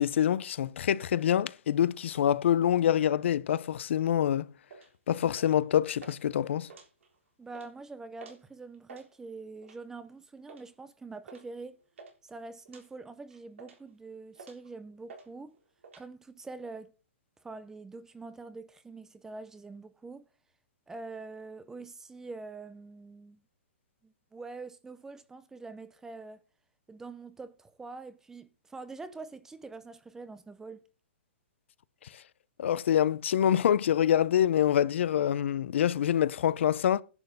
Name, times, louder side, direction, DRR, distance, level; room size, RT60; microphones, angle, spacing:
voice 1, 0.0-4.5 5.1-6.7 32.6-37.0, left 10 dB, 70° left, 0.6 m, -26 dB
sound 1, 4.7-4.9 5.4-5.7 6.0-6.2 6.6-7.2 7.5-7.7 8.2-8.4 8.7-9.1 9.6-9.9 10.5-10.7 11.3-11.5 11.7-12.2 12.7-12.9 13.3-13.9 14.4-14.7 15.1-15.3 15.5-16.1, right 4 dB, 85° right, 3.7 m, -50 dB
voice 2, 7.4-11.8 12.2-15.5 16.0-16.9 17.4-20.2 20.9-23.4 24.0-26.4 26.9-30.8, right 3 dB, 5° right, 0.6 m, -45 dB
10.5 x 8.1 x 5.4 m
hypercardioid pair, 150°, 7 cm